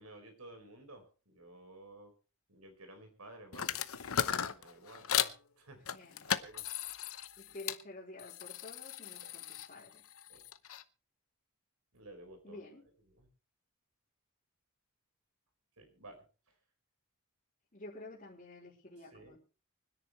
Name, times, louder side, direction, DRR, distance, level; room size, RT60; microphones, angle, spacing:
voice 1, 0.0-2.1 2.5-3.8 4.5-5.1 5.6-5.8 6.2-6.7 7.5-7.6 9.2-9.3 10.3-10.4 11.9-12.6 13.2-13.3 15.8-16.2 19.1-19.4, right 2 dB, 90° right, 5 dB, 4.8 m, -53 dB
sound 1, 3.5-5.4 5.9-7.8 8.2-10.8, left 9 dB, 70° left, 0.9 m, -37 dB
voice 2, 5.9-6.2 7.4-10.0 12.4-12.8 17.7-19.4, left 2 dB, 35° left, -7 dB, 4.4 m, -50 dB
25.0 x 10.0 x 3.2 m, 0.34 s
head